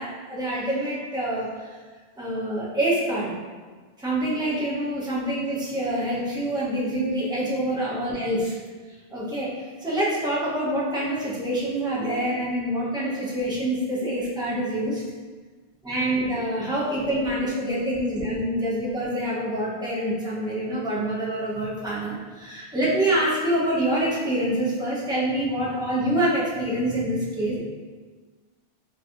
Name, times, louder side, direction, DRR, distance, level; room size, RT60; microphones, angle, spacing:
voice 1, 0.0-1.5 2.2-3.3 4.0-8.6 9.1-9.5 9.8-15.0 15.8-27.6, right 1 dB, 5° right, -7 dB, 0.5 m, -26 dB
4.0 x 2.6 x 2.4 m, 1.4 s
omnidirectional pair, 1.1 m